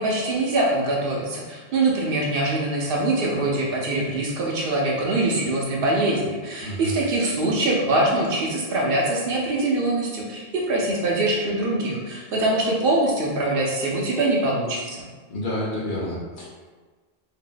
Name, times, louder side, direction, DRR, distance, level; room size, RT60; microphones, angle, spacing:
voice 1, 0.0-15.0, right 2 dB, 65° right, -2 dB, 0.8 m, -23 dB
voice 2, 6.6-6.9 15.3-16.5, equal, 55° left, -5 dB, 0.9 m, -29 dB
2.8 x 2.0 x 3.8 m, 1.4 s
omnidirectional pair, 1.1 m